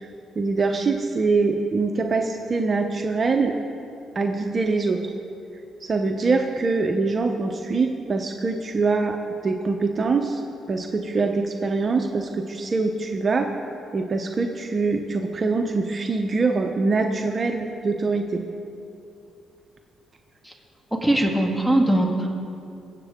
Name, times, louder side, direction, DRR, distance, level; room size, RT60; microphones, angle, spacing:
voice 1, 0.4-3.5 4.1-5.0 5.8-9.2 9.4-10.4 10.7-13.5 13.9-18.4, right 3 dB, 40° right, 3 dB, 0.8 m, -23 dB
voice 2, 21.0-22.3, right 1 dB, ahead, 1 dB, 1.8 m, -20 dB
23.5 x 8.2 x 3.7 m, 2.6 s
cardioid pair, 90°, 0 cm